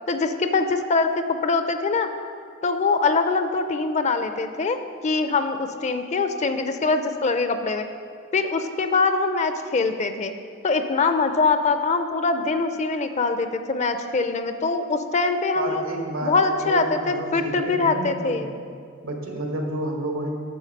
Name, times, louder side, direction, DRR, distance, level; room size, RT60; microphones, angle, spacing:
voice 1, 0.1-2.1 2.6-4.8 5.0-7.9 8.3-10.3 10.6-15.8 16.2-18.5, left 4 dB, 35° left, 8 dB, 0.5 m, -23 dB
voice 2, 15.5-18.5 19.0-20.3, right 1 dB, 85° right, 2 dB, 1.4 m, -30 dB
9.3 x 6.9 x 5.3 m, 2.2 s
head